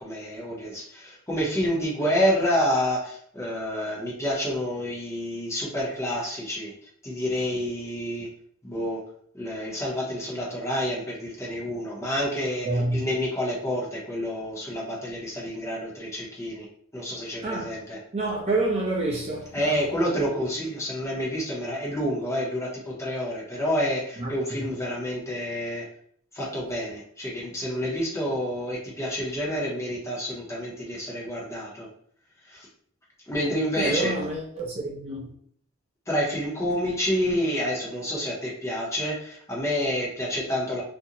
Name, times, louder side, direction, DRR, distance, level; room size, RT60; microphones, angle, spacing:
voice 1, 0.0-6.7 7.0-8.3 8.6-9.0 9.3-16.7 16.9-18.0 19.5-25.9 26.3-31.9 32.5-32.7 33.3-34.1 36.1-40.8, equal, 15° left, 0.7 m, -28 dB
voice 2, 12.6-13.0 17.4-17.7 18.1-19.8 24.2-24.3 33.8-35.3, right 2 dB, 30° right, 0.5 m, -28 dB
2.5 x 2.1 x 2.7 m
head